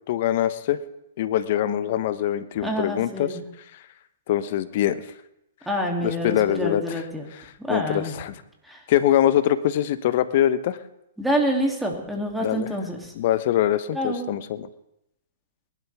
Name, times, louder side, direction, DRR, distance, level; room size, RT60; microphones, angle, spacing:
voice 1, 0.1-0.8 1.2-3.4 4.3-5.0 6.0-7.0 7.3-8.3 8.9-10.8 12.4-12.7 13.1-14.7, left 12 dB, 50° left, 13 dB, 1.0 m, -23 dB
voice 2, 2.6-3.4 5.7-7.3 7.6-8.1 8.7-8.8 11.2-13.1 13.9-14.3, equal, 5° right, 0 dB, 2.9 m, -27 dB
21.5 x 12.0 x 3.6 m, 0.83 s
hypercardioid pair, 120°, 0 cm